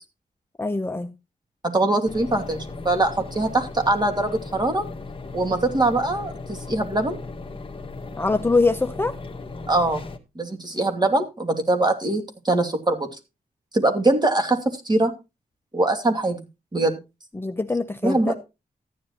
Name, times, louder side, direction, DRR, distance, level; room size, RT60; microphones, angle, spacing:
voice 1, 0.6-1.1 8.2-9.2 17.3-18.3, left 3 dB, 15° left, 0.7 m, -23 dB
voice 2, 1.6-4.8 5.3-7.2 9.7-10.0 10.4-13.1 13.7-14.6 14.8-15.1 15.7-16.4 16.7-16.9 18.0-18.4, right 2 dB, 25° right, 2.6 m, -22 dB
sound 1, 2.0-10.2, left 3 dB, 35° left, 1.7 m, -37 dB
14.0 x 10.5 x 2.9 m
cardioid pair, 85°, 16 cm